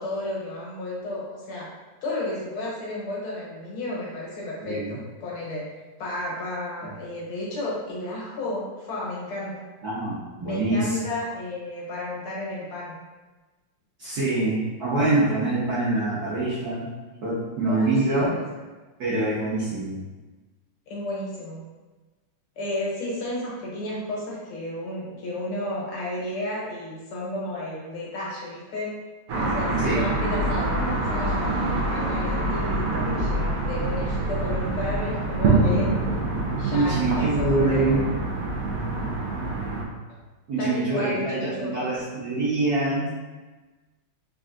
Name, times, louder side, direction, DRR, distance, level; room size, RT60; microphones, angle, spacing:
voice 1, 0.0-1.7 2.0-5.6 6.0-9.5 10.4-13.0 17.7-18.5 20.9-21.6 22.6-28.9 29.4-35.9 36.6-38.0 38.8-39.1 40.6-41.9, left 1 dB, 80° left, -6 dB, 2.0 m, -32 dB
voice 2, 4.6-5.0 6.8-6.9 9.8-11.0 14.0-16.9 17.2-18.4 19.0-20.0 29.8-30.1 36.7-38.0 40.5-43.1, right 2 dB, 55° right, -11 dB, 1.3 m, -25 dB
sound 1, 29.3-39.8, right 2 dB, 80° right, 0.7 m, -25 dB
3.8 x 3.6 x 2.5 m, 1.2 s
omnidirectional pair, 2.3 m